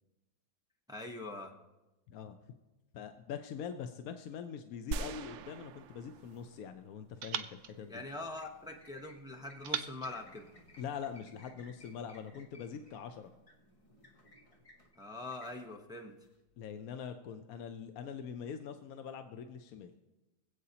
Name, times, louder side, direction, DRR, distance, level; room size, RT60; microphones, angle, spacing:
voice 1, 0.9-1.5 7.9-10.5 15.0-16.1, left 2 dB, 5° right, 2 dB, 0.7 m, -43 dB
voice 2, 2.9-8.0 10.8-13.3 16.6-19.9, left 7 dB, 65° left, 7 dB, 1.0 m, -43 dB
sound 1, 4.9-7.2, right 5 dB, 70° right, 0.7 m, -42 dB
sound 2, 5.4-6.6 7.2-8.8 9.6-11.2, right 9 dB, 90° right, 1.3 m, -44 dB
sound 3, 7.6-16.9, left 2 dB, 25° left, 0.9 m, -61 dB
24.0 x 8.2 x 2.9 m, 1.0 s
omnidirectional pair, 1.8 m